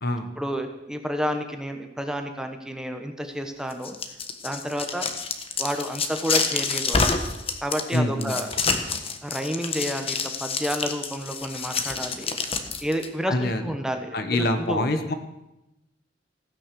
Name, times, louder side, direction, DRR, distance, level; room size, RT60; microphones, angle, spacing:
voice 1, 0.4-4.0 4.4-5.1 5.6-7.0 7.6-8.5 9.2-12.4 12.8-14.1 14.4-15.0, equal, 5° right, 5 dB, 1.1 m, -30 dB
sound 1, 3.7-13.1, left 4 dB, 30° left, 1.3 m, -27 dB
voice 2, 7.9-8.4 13.3-13.7 14.1-15.1, left 1 dB, 55° left, 8 dB, 1.4 m, -25 dB
15.5 x 9.6 x 6.9 m, 0.93 s
head